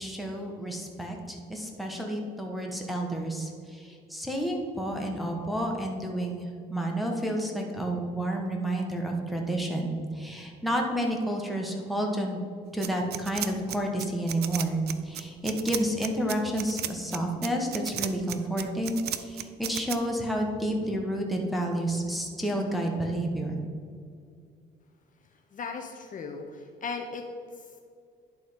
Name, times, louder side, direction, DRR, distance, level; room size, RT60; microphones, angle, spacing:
voice 1, 0.0-12.4 12.7-23.6, right 1 dB, ahead, 0 dB, 1.3 m, -30 dB
sound 1, 12.8-20.0, right 11 dB, 60° right, 0.5 m, -34 dB
voice 2, 25.3-27.2 27.5-27.7, left 4 dB, 45° left, 3 dB, 0.7 m, -38 dB
10.5 x 3.8 x 5.1 m, 2.2 s
cardioid pair, 100°, 19 cm